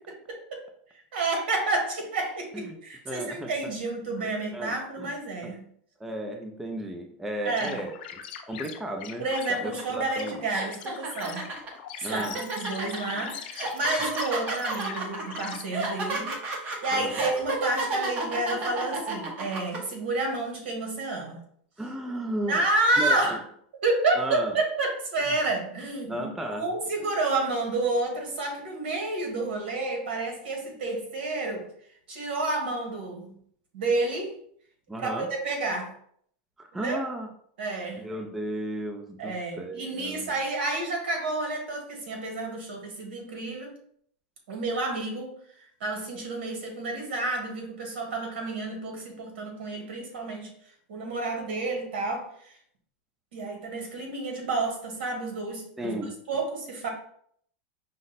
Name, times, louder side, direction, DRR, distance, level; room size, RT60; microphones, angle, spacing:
voice 1, 0.3-0.6 1.1-5.6 7.4-7.8 9.2-11.5 12.0-21.4 22.5-23.4 23.8-31.7 32.1-33.3 33.7-34.3 35.0-35.9 36.7-37.0 37.6-38.1 39.2-43.7 44.5-45.3 45.8-50.5 50.9-52.6 53.3-56.0 56.3-56.9, right 2 dB, 80° right, 2 dB, 1.5 m, -30 dB
voice 2, 3.1-3.5 4.2-5.1 5.4-5.5 6.0-8.0 8.5-10.4 12.0-12.4 16.9-17.2 21.8-22.6 23.0-23.4 24.1-24.5 26.1-26.7 34.9-35.3 36.6-37.3 38.0-40.3 55.8-56.2, right 1 dB, 5° right, 3 dB, 0.3 m, -34 dB
sound 1, 7.4-15.6, left 8 dB, 60° left, 0.6 m, -42 dB
sound 2, 9.8-9.9 10.4-19.8, right 2 dB, 25° right, 0.8 m, -31 dB
5.2 x 2.0 x 3.9 m, 0.64 s
supercardioid pair, 165°, 6 cm